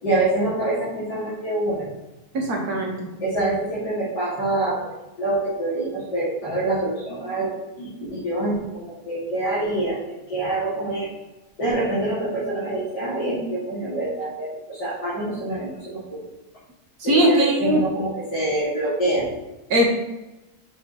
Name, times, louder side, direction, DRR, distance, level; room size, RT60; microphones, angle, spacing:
voice 1, 0.0-1.9 3.2-4.8 5.2-10.0 10.3-11.1 11.6-16.3 17.0-19.3, right 2 dB, 90° left, -11 dB, 3.3 m, -26 dB
voice 2, 2.3-2.9 17.0-17.8 19.7-19.9, right 1 dB, 65° right, -1 dB, 2.0 m, -19 dB
6.5 x 6.4 x 3.2 m, 1.0 s
omnidirectional pair, 1.8 m